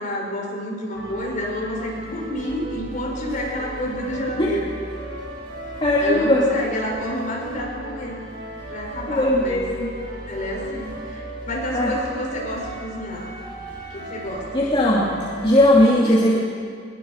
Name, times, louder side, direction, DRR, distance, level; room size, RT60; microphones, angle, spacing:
voice 1, 0.0-4.7 6.0-8.2 8.7-9.7 10.3-13.3 13.9-14.5 16.0-16.4, left 1 dB, 45° left, -1 dB, 5.8 m, -29 dB
sound 1, 0.9-15.8, right 1 dB, 60° right, 6.3 m, -36 dB
voice 2, 5.8-6.4 9.1-9.9 11.7-11.9 14.5-15.1 15.4-16.4, left 1 dB, 30° left, -5 dB, 2.7 m, -18 dB
21.5 x 21.0 x 6.6 m, 2.2 s
head